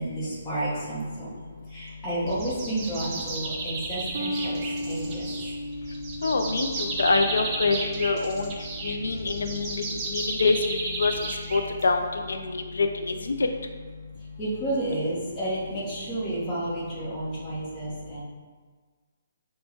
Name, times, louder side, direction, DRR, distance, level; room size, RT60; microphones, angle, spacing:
voice 1, 0.0-1.3 1.7-5.2 14.4-18.2, right 1 dB, 10° left, -9 dB, 0.9 m, -31 dB
sound 1, 2.3-12.1, right 3 dB, 15° right, 0.4 m, -34 dB
sound 2, 4.1-10.9, equal, 75° right, 0.5 m, -37 dB
voice 2, 6.2-8.5 8.8-11.1 11.5-12.0 12.3-13.3, left 3 dB, 90° left, 5 dB, 0.3 m, -25 dB
4.4 x 2.2 x 4.3 m, 1.5 s
hypercardioid pair, 175°, 0 cm